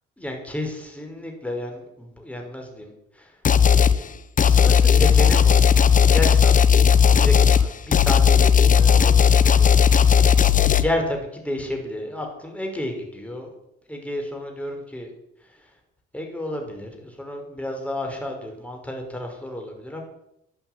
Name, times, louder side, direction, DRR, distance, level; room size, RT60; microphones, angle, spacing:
voice 1, 0.2-3.4 3.7-6.6 7.0-13.6 13.9-15.1 15.4-15.7 16.1-20.0, left 1 dB, 5° left, 2 dB, 5.8 m, -32 dB
sound 1, 3.4-4.0 4.4-10.8, left 7 dB, 40° left, 1.0 m, -15 dB
12.5 x 11.5 x 9.6 m, 0.81 s
cardioid pair, 90°, 20 cm